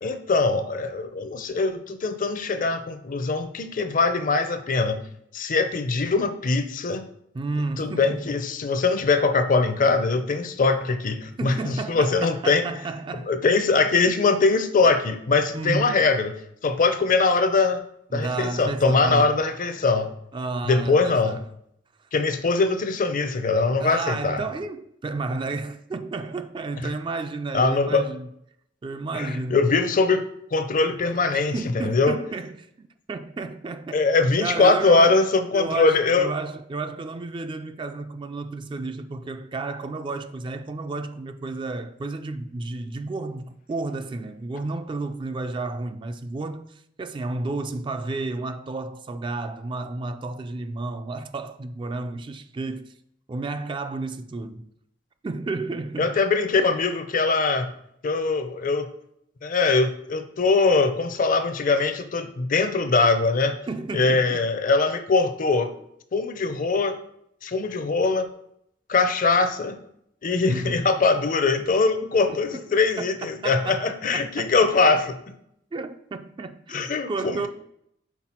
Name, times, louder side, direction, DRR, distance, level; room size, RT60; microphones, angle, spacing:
voice 1, 0.0-5.0 5.3-7.0 7.8-12.6 13.3-16.4 16.6-17.8 18.1-20.1 20.7-21.4 22.1-24.4 27.5-28.1 29.1-31.5 31.8-32.2 33.9-36.3 56.0-57.7 58.0-58.9 59.4-63.6 63.9-65.7 66.1-66.9 67.4-68.3 68.9-69.8 70.2-75.1 76.7-77.5, left 3 dB, 45° left, 0.5 m, -22 dB
voice 2, 7.3-8.3 11.4-13.3 15.5-15.9 18.1-19.4 20.3-21.4 22.0-22.1 23.8-28.3 28.8-29.7 31.0-34.1 34.4-35.2 35.5-52.9 53.3-54.7 55.2-56.2 63.7-64.5 70.5-70.8 73.4-73.9 74.1-74.7 75.7-77.5, right 3 dB, 25° right, 0.3 m, -32 dB
5.9 x 4.2 x 4.3 m
head